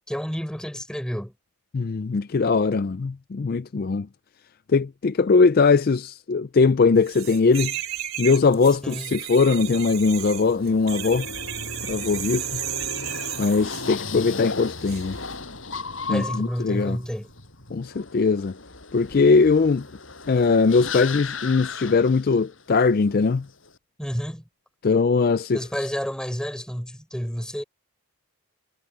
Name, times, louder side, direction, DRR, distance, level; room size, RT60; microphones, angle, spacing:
voice 1, 0.1-1.3 8.8-9.1 16.1-17.3 24.0-24.4 25.5-27.6, equal, 5° left, 4.3 m, -30 dB
voice 2, 1.7-4.1 4.7-7.7 8.2-11.3 11.9-12.5 13.4-15.2 16.1-17.0 17.7-18.5 18.9-19.8 20.3-23.5 24.8-25.6, left 4 dB, 45° left, 0.4 m, -20 dB
sound 1, 7.1-13.9 14.8-15.0, right 11 dB, 70° right, 2.9 m, -33 dB
sound 2, 9.7-22.8 23.1-23.7, left 4 dB, 65° left, 6.1 m, -36 dB
head